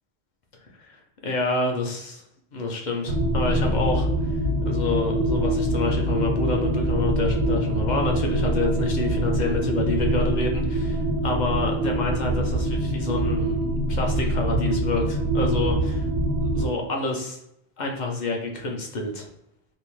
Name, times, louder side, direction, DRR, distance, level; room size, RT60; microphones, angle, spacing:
voice 1, 0.8-2.2 2.5-4.4 4.6-16.1 16.5-17.4 17.8-19.3, left 3 dB, 55° left, 1 dB, 0.6 m, -28 dB
sound 1, 3.1-16.7, right 1 dB, 85° right, 1.0 m, -24 dB
2.6 x 2.0 x 2.9 m, 0.78 s
omnidirectional pair, 1.1 m